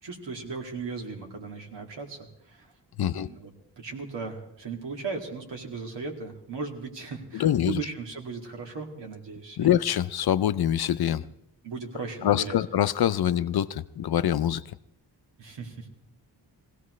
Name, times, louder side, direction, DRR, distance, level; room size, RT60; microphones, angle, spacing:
voice 1, 0.0-2.7 3.0-9.8 11.1-11.3 11.6-12.6 15.4-15.9, right 4 dB, 90° right, 2.4 m, -37 dB
voice 2, 3.0-3.3 7.3-7.8 9.6-11.2 12.2-14.6, left 10 dB, 65° left, 0.5 m, -24 dB
22.0 x 16.5 x 3.2 m
wide cardioid pair, 140°, 42 cm